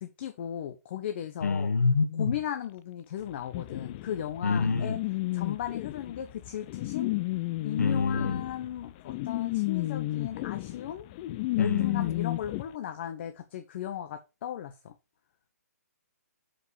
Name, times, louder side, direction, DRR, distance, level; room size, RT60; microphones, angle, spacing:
voice 1, 0.0-1.8 2.2-5.0 5.3-7.1 7.6-11.1 11.6-14.9, left 10 dB, 40° left, 0.8 m, -36 dB
voice 2, 1.4-2.3 4.4-5.0 7.8-8.4 11.6-12.1, left 4 dB, 80° left, 1.5 m, -26 dB
sound 1, 3.5-12.6, left 19 dB, 25° left, 0.3 m, -32 dB
6.6 x 5.1 x 4.8 m
hypercardioid pair, 155°, 9 cm